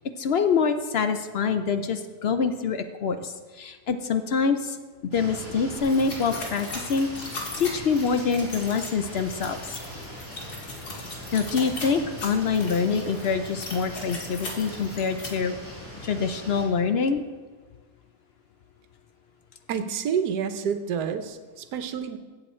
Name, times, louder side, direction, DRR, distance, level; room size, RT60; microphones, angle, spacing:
voice 1, 0.2-4.8 5.1-7.1 7.6-9.8 11.0-15.5 16.0-17.2, left 5 dB, 60° left, 9 dB, 0.6 m, -25 dB
sound 1, 5.1-16.6, equal, 10° left, 3.4 m, -41 dB
sound 2, 5.8-15.3, left 2 dB, 80° left, 2.4 m, -38 dB
voice 2, 19.7-22.2, right 7 dB, 85° right, 9 dB, 1.4 m, -28 dB
15.5 x 7.9 x 4.4 m, 1.4 s
omnidirectional pair, 1.7 m